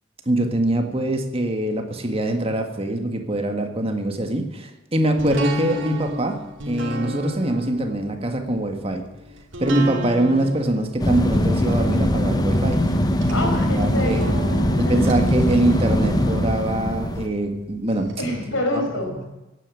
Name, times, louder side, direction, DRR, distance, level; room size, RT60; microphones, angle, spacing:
voice 1, 0.2-9.0 9.6-12.8 13.5-14.2 14.8-18.1, right 1 dB, 30° right, 5 dB, 1.7 m, -23 dB
sound 1, 5.2-18.1 18.5-18.6, equal, 70° right, 2.8 m, -34 dB
sound 2, 11.0-17.3, left 1 dB, 20° left, 0.9 m, -21 dB
voice 2, 13.3-15.2 18.2-19.3, left 1 dB, 85° left, 2 dB, 5.2 m, -27 dB
16.5 x 9.8 x 8.4 m, 1.0 s
head